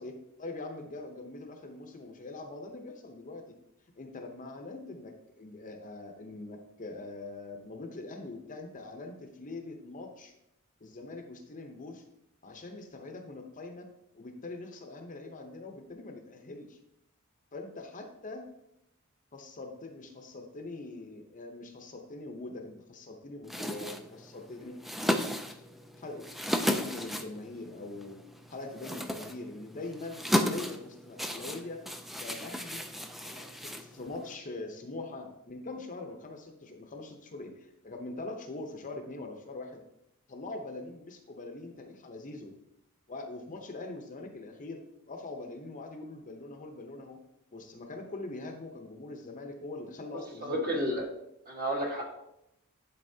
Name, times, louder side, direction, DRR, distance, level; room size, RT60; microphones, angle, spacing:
voice 1, 0.0-3.4 4.0-10.3 10.8-12.0 12.4-13.9 14.1-16.8 17.5-18.5 19.3-25.0 26.0-26.3 26.6-28.2 28.5-31.8 32.1-32.8 33.2-39.8 40.3-42.5 43.1-47.2 47.5-51.0, left 2 dB, 35° left, 4 dB, 0.7 m, -43 dB
sound 1, 23.4-34.4, equal, ahead, 0.4 m, -35 dB
voice 2, 50.4-51.1 51.5-52.0, equal, 40° right, -1 dB, 1.5 m, -31 dB
11.0 x 4.1 x 2.7 m, 0.82 s
head